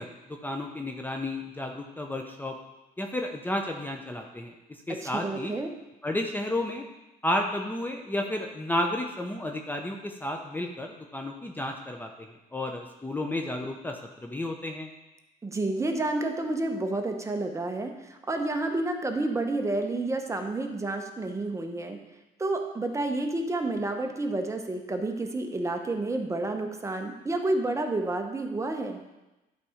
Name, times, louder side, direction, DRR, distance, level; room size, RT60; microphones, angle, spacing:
voice 1, 0.0-2.6 3.0-5.5 6.0-6.8 7.2-14.9, left 1 dB, 10° left, 2 dB, 0.7 m, -32 dB
voice 2, 4.9-5.7 15.4-22.0 22.4-29.0, right 2 dB, 15° right, 4 dB, 0.9 m, -30 dB
11.5 x 4.2 x 5.0 m, 1.0 s
cardioid pair, 110°, 17 cm